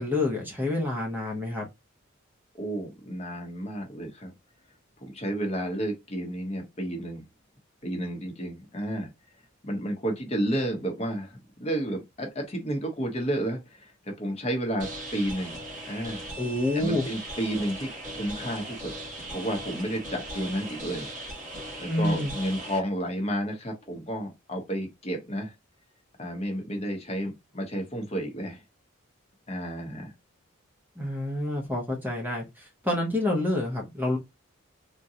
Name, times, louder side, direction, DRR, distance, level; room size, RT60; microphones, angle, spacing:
voice 1, 0.0-1.7 16.4-17.0 21.9-22.3 31.0-34.2, left 1 dB, 10° right, 0.7 m, -28 dB
voice 2, 2.5-4.3 5.0-7.2 7.8-9.1 9.6-13.9 14.2-16.2 16.7-18.9 19.3-21.1 21.8-25.5 26.2-28.6 29.5-30.1, right 1 dB, 30° left, 0.8 m, -31 dB
sound 1, 14.8-22.8, right 1 dB, 35° right, 1.3 m, -38 dB
3.6 x 2.2 x 2.7 m
head